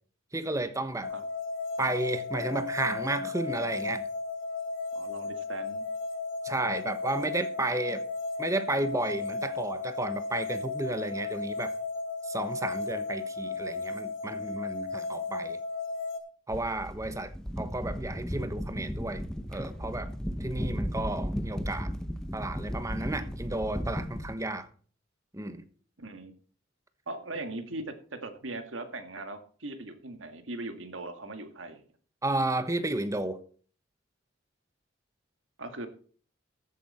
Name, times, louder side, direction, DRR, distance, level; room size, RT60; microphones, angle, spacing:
voice 1, 0.3-1.1 1.8-4.1 6.4-8.0 8.4-11.7 12.3-15.6 16.5-19.2 19.5-20.1 20.4-21.9 22.3-24.7 25.3-25.6 32.2-33.4, right 2 dB, 15° right, 1.1 m, -32 dB
sound 1, 1.0-16.2, left 3 dB, 75° left, 2.5 m, -35 dB
voice 2, 4.9-5.8 26.0-26.3 27.1-27.9 28.2-31.8 35.6-35.9, right 2 dB, 70° right, 1.9 m, -39 dB
sound 2, 16.5-24.3, equal, 5° left, 0.8 m, -35 dB
14.5 x 8.1 x 4.3 m
head